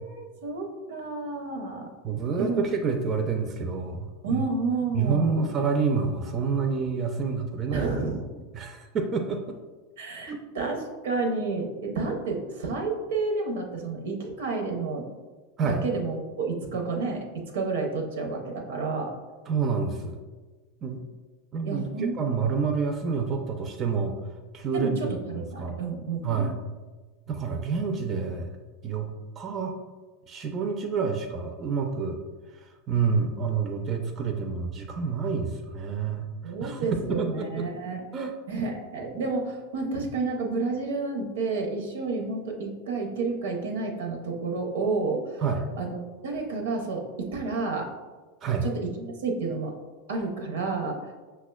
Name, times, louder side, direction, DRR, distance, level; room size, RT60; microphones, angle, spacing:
voice 1, 0.0-1.9 2.4-2.6 4.2-5.5 7.7-8.2 10.0-15.1 15.6-19.2 21.6-22.2 24.7-26.5 36.4-38.0 38.5-45.4 45.8-46.0 46.2-47.9 48.6-49.7 50.1-51.1, right 3 dB, 85° right, 2 dB, 0.6 m, -30 dB
voice 2, 2.0-4.4 4.9-7.9 8.5-9.6 10.3-10.4 15.6-15.8 19.5-20.2 20.8-21.0 21.5-24.1 24.5-25.0 25.3-25.8 26.2-26.6 27.3-28.5 28.8-29.1 29.4-29.7 30.3-32.2 32.9-36.3 36.6-37.7 38.1-38.3 45.4-45.6 48.4-48.6, right 5 dB, 35° right, 4 dB, 0.3 m, -28 dB
5.7 x 2.1 x 2.2 m, 1.3 s
hypercardioid pair, 110°, 0 cm